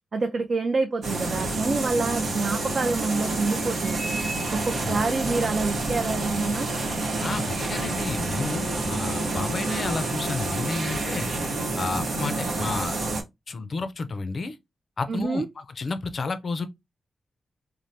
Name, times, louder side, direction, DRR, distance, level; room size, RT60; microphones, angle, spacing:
voice 1, 0.1-4.1 4.6-6.7 15.1-15.5, right 3 dB, 50° right, 0.4 m, -27 dB
sound 1, 1.0-13.2, right 2 dB, 85° right, 0.9 m, -28 dB
voice 2, 4.6-5.1 7.2-11.3 11.8-13.0 13.5-14.6 15.0-16.7, left 3 dB, 50° left, 0.4 m, -31 dB
3.1 x 2.0 x 2.6 m
cardioid pair, 90°, 0 cm